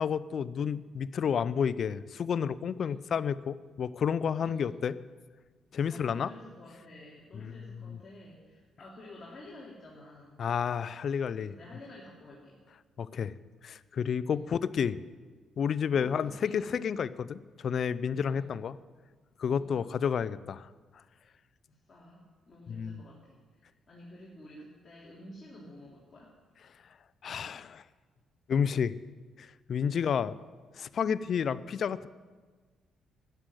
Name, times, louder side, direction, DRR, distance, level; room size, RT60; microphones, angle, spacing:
voice 1, 0.0-5.0 5.7-6.3 7.3-7.5 7.9-8.0 10.4-11.6 13.0-13.3 13.6-15.0 15.6-18.8 19.4-20.7 22.7-23.0 27.2-27.8 28.5-29.0 29.4-30.3 30.7-32.1, left 7 dB, 55° left, 16 dB, 0.5 m, -30 dB
voice 2, 4.4-4.8 5.9-10.4 11.4-12.6 14.2-14.6 15.9-16.7 18.2-18.6 19.6-19.9 21.7-26.3 29.9-30.0, left 1 dB, 35° left, -5 dB, 3.3 m, -51 dB
13.0 x 7.7 x 10.0 m, 1.4 s
cardioid pair, 90°, 0 cm